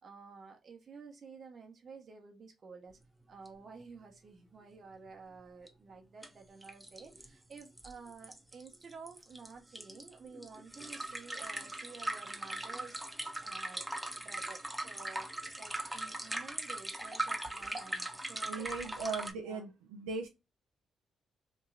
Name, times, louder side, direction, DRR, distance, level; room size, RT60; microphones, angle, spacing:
voice 1, 0.0-3.0 3.3-13.9 14.2-15.3 15.6-18.8 19.0-19.7, right 5 dB, 50° right, 0.8 m, -52 dB
sound 1, 3.5-3.6 3.8-3.9 5.7-5.8 6.2-6.3 6.6-19.3, right 1 dB, 10° right, 0.8 m, -40 dB
voice 2, 18.5-20.3, right 4 dB, 85° right, 0.4 m, -38 dB
3.0 x 2.6 x 2.6 m
hypercardioid pair, 45°, 0 cm